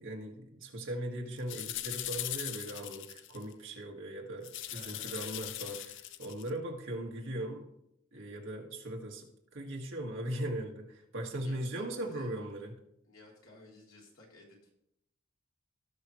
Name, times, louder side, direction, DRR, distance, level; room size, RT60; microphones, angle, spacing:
voice 1, 0.0-7.7 8.1-9.3 9.5-12.7, right 1 dB, 65° right, 0 dB, 1.9 m, -39 dB
sound 1, 1.4-3.5 4.4-6.5, left 13 dB, 60° left, 0.4 m, -40 dB
voice 2, 4.7-5.4 11.4-12.4 13.0-14.7, left 2 dB, 75° left, -2 dB, 3.0 m, -55 dB
17.5 x 6.0 x 3.2 m, 0.78 s
head